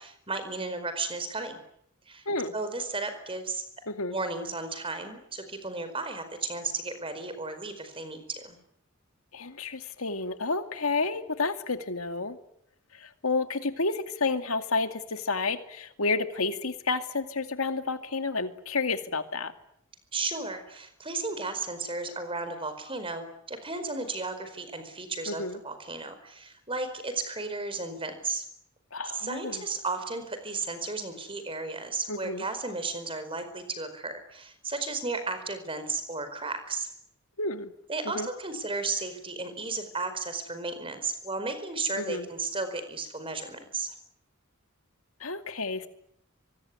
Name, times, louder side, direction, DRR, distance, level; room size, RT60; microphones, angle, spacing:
voice 1, 0.0-1.6 2.1-2.3 2.5-3.6 4.1-8.6 20.1-28.4 29.1-36.9 37.9-43.9, right 3 dB, 25° right, 10 dB, 4.7 m, -34 dB
voice 2, 9.3-12.4 12.9-19.5 25.3-25.6 28.9-29.6 32.1-32.4 37.4-37.7 38.1-38.3 42.0-42.3 45.2-45.9, left 3 dB, 75° left, 8 dB, 2.4 m, -30 dB
24.5 x 24.0 x 9.7 m, 0.71 s
head